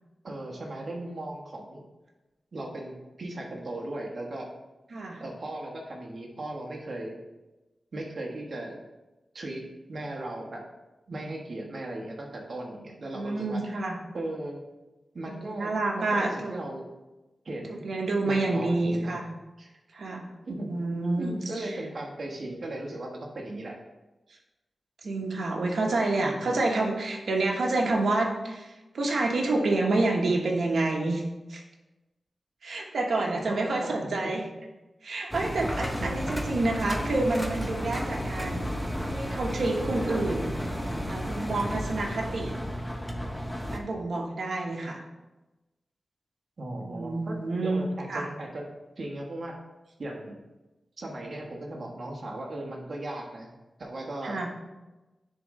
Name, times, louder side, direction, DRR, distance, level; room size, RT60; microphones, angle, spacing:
voice 1, 0.2-1.8 2.5-4.5 5.2-7.2 7.9-8.8 9.3-10.6 11.1-13.6 14.1-14.6 15.1-16.8 17.4-17.9 18.2-19.2 19.6-19.7 20.4-20.7 21.2-23.8 26.2-26.5 33.2-34.3 36.0-36.2 46.6-48.7 49.0-49.6 50.0-50.4 51.0-53.5 53.8-54.5, right 1 dB, 55° right, 0 dB, 1.3 m, -37 dB
voice 2, 4.9-5.2 13.1-14.0 15.3-16.5 17.8-19.3 19.9-20.3 20.7-21.7 25.0-31.2 31.5-31.6 32.6-34.5 35.0-38.7 39.1-40.6 41.1-42.5 43.7-45.0 46.8-48.3 54.2-54.5, right 2 dB, 80° right, 1 dB, 1.1 m, -28 dB
Engine, 35.3-43.8, equal, 5° left, 0.7 m, -32 dB
10.0 x 3.7 x 3.1 m, 1.1 s
wide cardioid pair, 95°, 0 cm